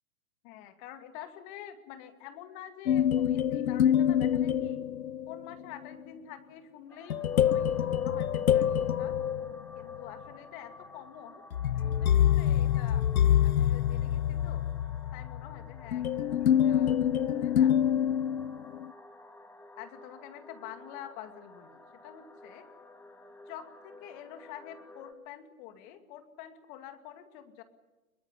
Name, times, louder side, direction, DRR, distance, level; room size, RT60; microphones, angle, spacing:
voice 1, 0.4-4.8 5.3-9.2 9.7-11.4 11.8-13.1 13.4-14.7 15.1-17.0 17.4-17.9 19.8-22.7 23.5-27.6, left 10 dB, 35° left, 8 dB, 2.4 m, -47 dB
sound 1, 2.9-5.5 7.1-10.1 11.5-18.8, left 10 dB, 90° left, 0.9 m, -26 dB
sound 2, 6.9-25.1, left 2 dB, 5° left, 2.0 m, -53 dB
22.5 x 20.5 x 9.9 m, 1.1 s
hypercardioid pair, 140°, 41 cm